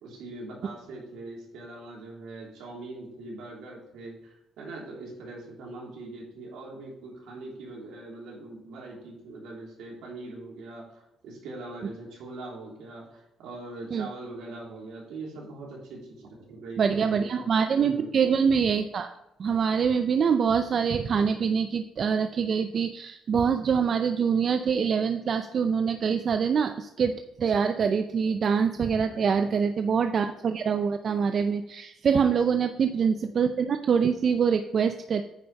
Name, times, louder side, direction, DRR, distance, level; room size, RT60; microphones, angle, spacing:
voice 1, 0.0-17.4 17.8-18.1 29.3-29.5 32.4-32.8, right 2 dB, 85° right, -3 dB, 3.2 m, -42 dB
voice 2, 16.8-19.1 19.4-35.2, right 6 dB, 55° right, 8 dB, 0.5 m, -25 dB
9.2 x 5.1 x 5.4 m, 0.87 s
cardioid pair, 90°, 0 cm